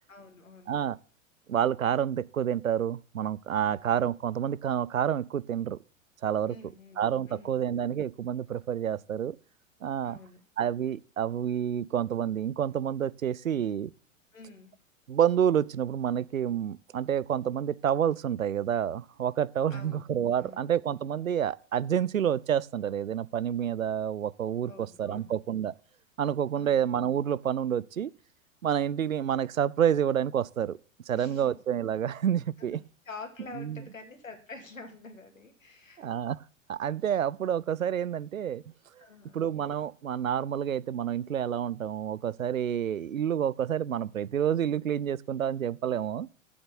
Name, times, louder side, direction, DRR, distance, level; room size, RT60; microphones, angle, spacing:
voice 1, 0.1-0.7 3.6-3.9 6.5-7.6 10.0-10.4 14.3-14.7 19.7-20.1 20.4-20.6 24.6-25.3 26.5-26.8 31.1-31.6 32.6-32.8 33.0-36.1 39.0-39.4, left 4 dB, 80° left, 2.7 m, -47 dB
voice 2, 1.5-5.8 6.2-6.5 7.0-9.4 9.8-10.2 10.6-13.9 15.1-24.7 25.0-25.7 26.2-28.1 28.6-30.8 31.1-32.8 33.6-33.8 36.0-36.4 36.7-38.6 39.3-46.3, right 9 dB, 80° right, 0.6 m, -28 dB
7.9 x 7.2 x 8.6 m
figure-of-eight pair, 100°, 39 cm